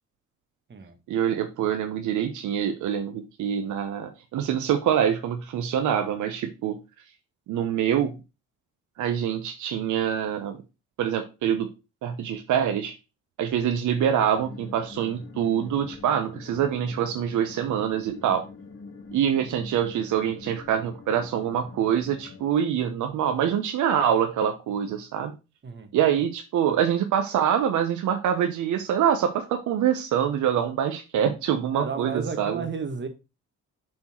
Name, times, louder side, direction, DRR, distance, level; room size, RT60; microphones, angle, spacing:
voice 1, 1.1-6.8 7.5-8.1 9.0-10.6 11.0-11.7 12.0-12.9 13.4-18.4 19.1-25.4 25.9-32.7, right 9 dB, 80° right, 0.9 m, -25 dB
sound 1, 14.3-22.4, left 4 dB, 40° left, 2.8 m, -45 dB
voice 2, 31.7-33.1, right 5 dB, 40° right, 1.6 m, -32 dB
7.4 x 4.4 x 4.4 m
cardioid pair, 90°, 30 cm